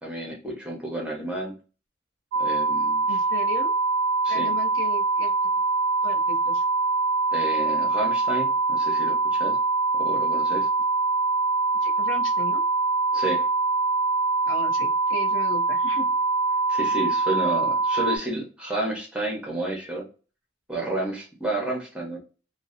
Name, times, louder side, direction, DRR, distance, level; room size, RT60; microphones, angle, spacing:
voice 1, 0.0-1.5 2.4-3.2 4.2-4.5 7.3-9.6 9.9-10.7 13.1-13.5 16.7-20.0 20.7-22.2, right 2 dB, 5° right, -1 dB, 0.7 m, -31 dB
sound 1, 2.3-18.2, right 3 dB, 85° right, 0.3 m, -24 dB
voice 2, 3.1-3.7 4.3-5.3 6.0-6.6 11.8-12.6 14.5-16.1, left 2 dB, 85° left, 4 dB, 0.6 m, -36 dB
2.6 x 2.1 x 2.4 m, 0.34 s
head